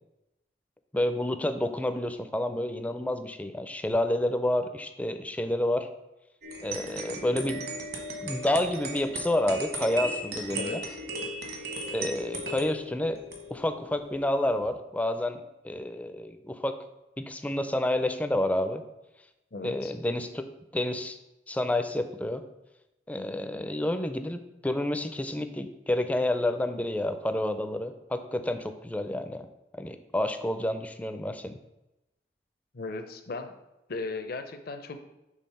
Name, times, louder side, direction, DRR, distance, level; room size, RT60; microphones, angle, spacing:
voice 1, 0.9-5.9 6.6-7.6 8.2-10.8 11.9-13.2 13.5-16.8 17.2-18.8 19.6-20.5 20.7-21.2 21.5-22.4 23.1-29.5 29.8-31.6, left 1 dB, 10° left, 9 dB, 0.4 m, -29 dB
sound 1, 6.4-14.7, right 1 dB, 65° right, 1.3 m, -37 dB
voice 2, 10.5-11.0 19.5-19.9 32.7-33.6 33.9-35.0, left 3 dB, 60° left, 7 dB, 0.6 m, -37 dB
6.4 x 3.6 x 5.4 m, 0.95 s
head